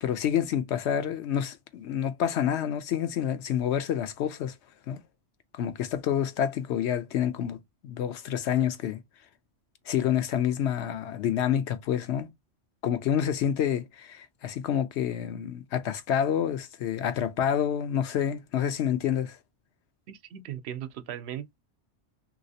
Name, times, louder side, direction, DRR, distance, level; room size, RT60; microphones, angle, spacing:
voice 1, 0.0-4.5 4.9-5.0 5.5-7.6 7.8-9.0 9.9-12.3 12.8-19.4, left 9 dB, 75° left, 0.9 m, -28 dB
voice 2, 20.1-21.6, right 10 dB, 70° right, 0.8 m, -38 dB
3.2 x 2.9 x 2.7 m
omnidirectional pair, 1.2 m